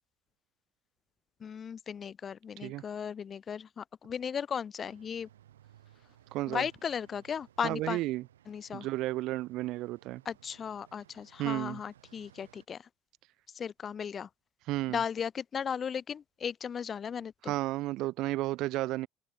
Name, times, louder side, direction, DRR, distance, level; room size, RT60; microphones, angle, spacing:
voice 1, 1.4-5.3 6.5-8.0 8.5-8.9 10.2-12.8 13.5-14.3 14.9-17.5, left 7 dB, 40° left, 3.0 m, -36 dB
sound 1, 4.8-12.7, right 12 dB, 80° right, 4.5 m, -61 dB
voice 2, 6.3-6.6 7.6-8.2 8.7-10.2 11.4-11.8 14.7-15.0 17.5-19.1, right 17 dB, 60° right, 0.7 m, -32 dB
open air
figure-of-eight pair, 60°, 0 cm